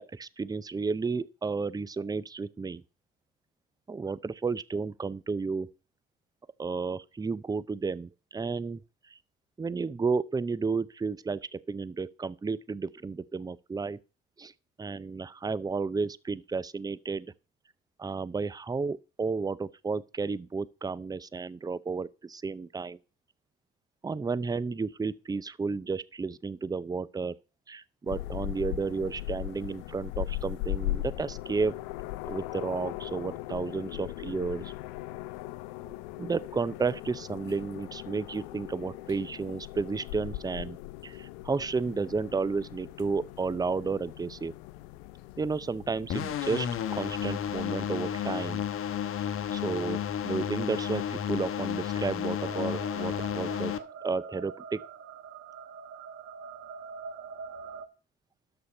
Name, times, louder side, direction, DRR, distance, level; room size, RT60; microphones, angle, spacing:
voice 1, 0.0-2.8 3.9-5.7 6.6-8.8 9.1-9.2 9.6-14.0 14.4-14.5 14.8-17.3 18.0-23.0 24.0-27.3 27.7-31.8 32.3-34.7 36.2-40.8 41.0-44.5 45.4-48.6 49.3-53.7 54.0-54.8, right 4 dB, 15° right, 0.5 m, -32 dB
sound 1, 28.1-47.6, left 16 dB, 70° left, 0.6 m, -39 dB
sound 2, 46.1-53.8, left 9 dB, 50° left, 1.1 m, -32 dB
sound 3, 52.5-57.9, right 6 dB, 55° right, 1.3 m, -44 dB
12.5 x 4.5 x 5.6 m
hypercardioid pair, 50°, 29 cm